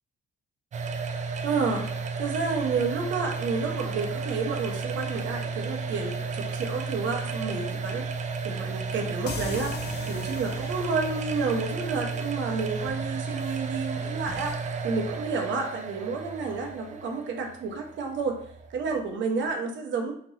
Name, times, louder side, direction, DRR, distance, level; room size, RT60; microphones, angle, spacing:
sound 1, 0.7-19.4, right 4 dB, 35° right, 0.4 m, -33 dB
voice 1, 1.4-1.9 2.2-9.7 10.1-18.3 18.7-20.1, right 4 dB, 70° right, 2 dB, 0.7 m, -30 dB
sound 2, 9.3-12.8, left 5 dB, 60° left, 0.4 m, -40 dB
2.9 x 2.5 x 3.1 m, 0.64 s
cardioid pair, 90°, 20 cm